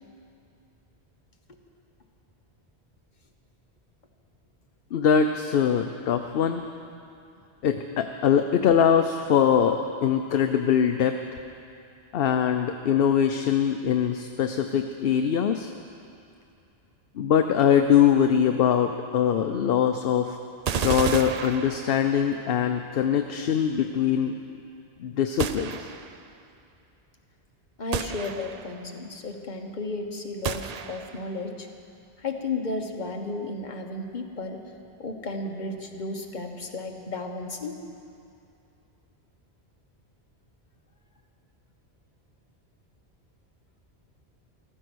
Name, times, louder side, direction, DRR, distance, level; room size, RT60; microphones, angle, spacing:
voice 1, 4.9-6.6 7.6-11.2 12.1-15.7 17.2-20.4 20.7-24.4 25.0-25.9, left 8 dB, 65° left, 6 dB, 0.8 m, -22 dB
sound 1, 20.7-22.3 25.4-26.3 27.9-28.8 30.4-31.3, right 7 dB, 50° right, 0.5 m, -32 dB
voice 2, 27.8-31.7 32.2-34.6 35.0-37.8, left 3 dB, 45° left, 3 dB, 1.4 m, -33 dB
14.5 x 14.5 x 6.2 m, 2.6 s
omnidirectional pair, 1.1 m